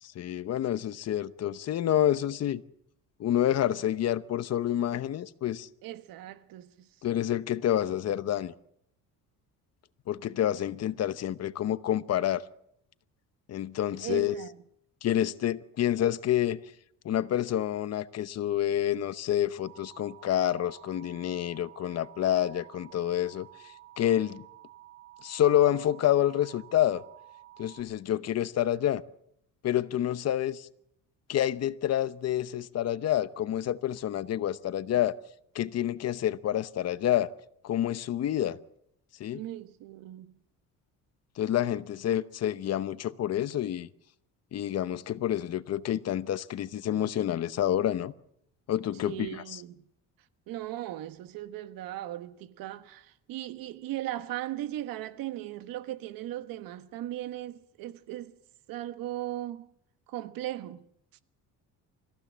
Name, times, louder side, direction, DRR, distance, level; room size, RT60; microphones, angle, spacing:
voice 1, 0.0-2.6 3.2-5.7 7.0-8.5 10.1-12.4 13.5-14.3 15.0-16.6 17.0-23.5 24.0-24.4 25.2-27.0 27.6-29.0 29.6-30.7 31.3-35.1 35.5-37.3 37.6-38.6 39.2-39.4 41.4-43.9 44.5-48.1 48.7-49.6, left 11 dB, 50° left, 0.9 m, -28 dB
voice 2, 5.8-6.9 14.0-14.6 39.3-40.3 49.0-49.8 50.5-58.3 58.7-59.7 60.1-60.8, right 14 dB, 80° right, 1.4 m, -38 dB
Alarm, 19.6-27.8, right 15 dB, 60° right, 3.3 m, -52 dB
25.0 x 15.5 x 7.4 m
cardioid pair, 140°, 34 cm